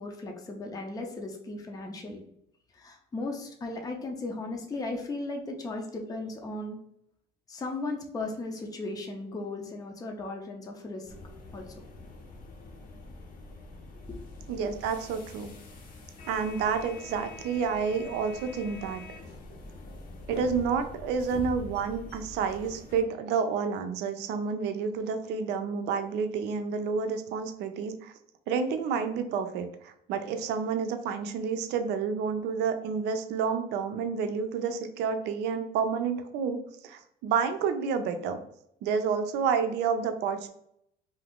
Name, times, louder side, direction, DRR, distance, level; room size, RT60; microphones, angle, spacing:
voice 1, 0.0-2.2 2.7-6.8 7.5-11.1 11.5-11.9 14.1-14.2, left 2 dB, 20° left, 2 dB, 0.5 m, -36 dB
sound 1, 11.1-23.0, left 3 dB, 60° left, 0.8 m, -44 dB
voice 2, 14.5-15.6 16.3-19.0 20.3-28.1 28.5-38.4 38.8-40.5, right 6 dB, 85° right, 8 dB, 0.5 m, -29 dB
2.6 x 2.4 x 3.5 m, 0.73 s
cardioid pair, 110°, 17 cm